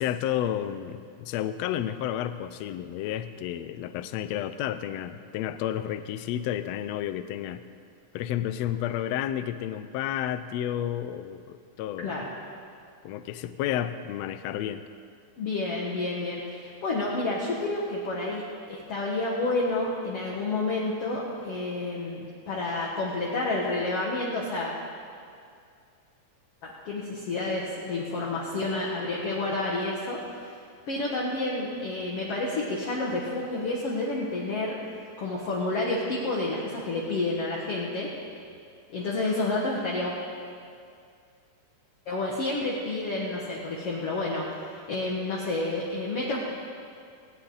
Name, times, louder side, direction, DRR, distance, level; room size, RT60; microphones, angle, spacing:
voice 1, 0.0-7.6 8.1-12.2 13.0-14.8, left 11 dB, 90° left, 11 dB, 1.5 m, -31 dB
voice 2, 15.4-24.8 26.6-30.5 30.9-34.8 35.2-38.1 38.9-40.1 42.1-46.4, left 2 dB, 55° left, -4 dB, 2.3 m, -30 dB
19.0 x 17.5 x 4.0 m, 2.3 s
omnidirectional pair, 3.7 m